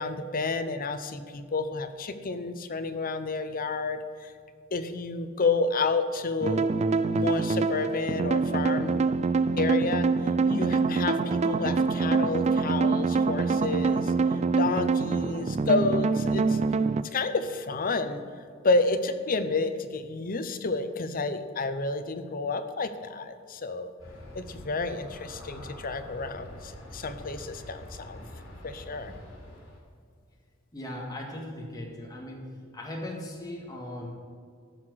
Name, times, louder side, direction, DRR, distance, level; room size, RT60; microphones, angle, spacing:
voice 1, 0.0-4.3 4.7-6.7 7.1-9.0 9.6-10.1 10.5-14.1 14.6-16.6 17.1-18.2 18.6-23.9 24.3-28.3 28.6-29.1, left 3 dB, 45° left, 9 dB, 0.7 m, -30 dB
sound 1, 6.4-17.0, right 4 dB, 35° right, 0.3 m, -25 dB
Aircraft, 24.0-29.8, left 1 dB, 70° left, 3.5 m, -45 dB
voice 2, 30.7-32.4 32.7-34.2, left 1 dB, 20° left, -2 dB, 1.8 m, -38 dB
14.0 x 6.0 x 6.3 m, 2.2 s
head